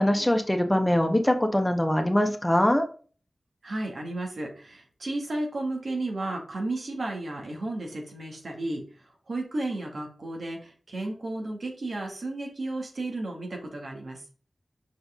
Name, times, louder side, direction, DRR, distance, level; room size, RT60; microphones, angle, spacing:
voice 1, 0.0-2.8, left 1 dB, 15° left, 5 dB, 1.4 m, -23 dB
voice 2, 3.6-14.2, right 2 dB, 70° right, 1 dB, 2.3 m, -33 dB
6.2 x 5.0 x 3.8 m, 0.39 s
cardioid pair, 40°, 0 cm